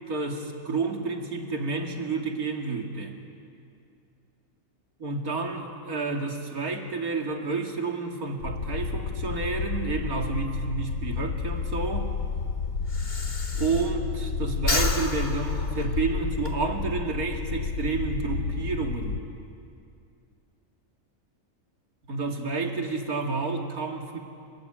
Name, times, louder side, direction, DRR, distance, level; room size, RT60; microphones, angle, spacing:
voice 1, 0.0-3.2 5.0-12.1 13.6-19.2 22.1-24.2, right 4 dB, 80° right, 2 dB, 2.9 m, -30 dB
sound 1, 8.4-19.2, left 5 dB, 75° left, 1.6 m, -31 dB
Breathing, 11.5-14.3 14.6-16.5, left 2 dB, 30° left, 1.8 m, -31 dB
27.5 x 23.5 x 8.9 m, 2.4 s
omnidirectional pair, 1.5 m